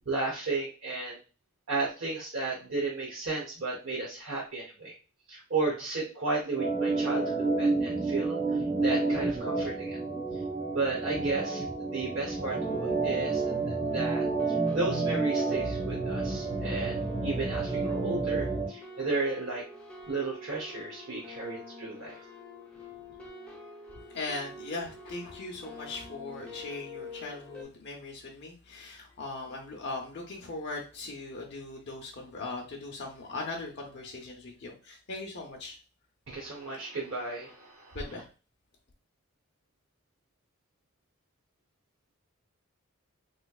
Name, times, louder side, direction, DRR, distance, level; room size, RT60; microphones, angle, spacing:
voice 1, 0.1-1.2 1.7-4.9 5.3-10.0 10.7-17.0 17.2-19.6 20.1-22.2 36.3-38.0, right 3 dB, 65° right, -3 dB, 0.8 m, -34 dB
Organ, 6.5-18.7, right 3 dB, 35° right, 1.1 m, -30 dB
sound 1, 12.5-27.6, left 2 dB, 5° left, 0.7 m, -47 dB
voice 2, 24.1-35.8 37.9-38.3, left 3 dB, 50° left, 0 dB, 0.6 m, -39 dB
3.4 x 3.1 x 2.3 m, 0.34 s
head